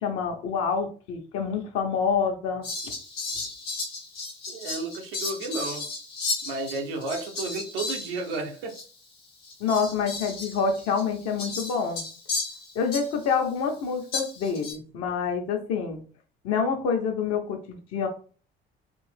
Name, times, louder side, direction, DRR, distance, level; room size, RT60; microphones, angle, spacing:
voice 1, 0.0-2.7 9.6-12.0 12.7-16.0 16.4-18.1, left 6 dB, 50° left, 0.9 m, -27 dB
Fowl, 2.6-8.4 8.7-8.8 9.4-13.3 14.1-14.7, left 3 dB, 80° left, 1.0 m, -34 dB
voice 2, 4.5-5.9 6.4-8.8, right 3 dB, 70° right, 0.8 m, -32 dB
3.4 x 2.5 x 3.4 m
figure-of-eight pair, 55°, 30 cm